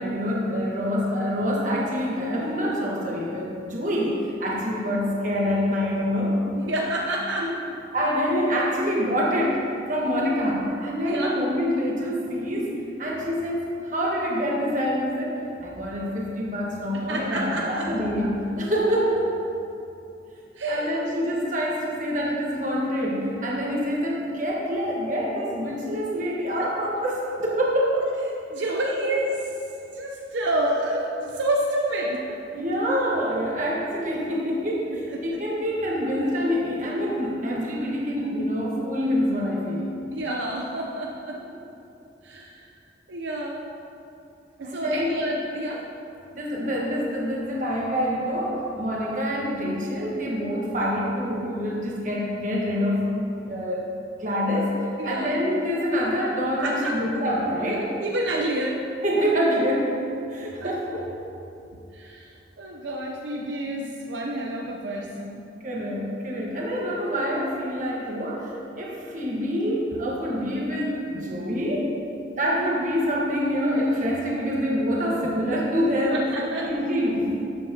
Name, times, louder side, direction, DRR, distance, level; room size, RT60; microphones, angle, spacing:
voice 1, 0.0-6.4 7.4-7.5 7.9-19.3 20.6-28.1 32.5-39.9 41.3-41.4 44.6-45.2 46.3-53.8 54.2-57.9 59.0-60.0 60.3-61.3 65.6-71.9 72.4-76.3 76.6-77.3, equal, 40° right, -4 dB, 1.4 m, -26 dB
voice 2, 6.5-7.5 11.0-11.3 17.1-17.9 20.6-21.0 28.4-29.4 29.9-32.3 35.1-35.4 40.1-41.4 42.2-42.7 43.1-43.6 44.6-45.8 55.0-55.3 56.6-56.9 58.0-58.8 60.6-60.7 61.9-65.4 76.1-76.7, right 1 dB, 80° right, -1 dB, 0.7 m, -28 dB
12.5 x 7.6 x 2.9 m, 2.7 s
head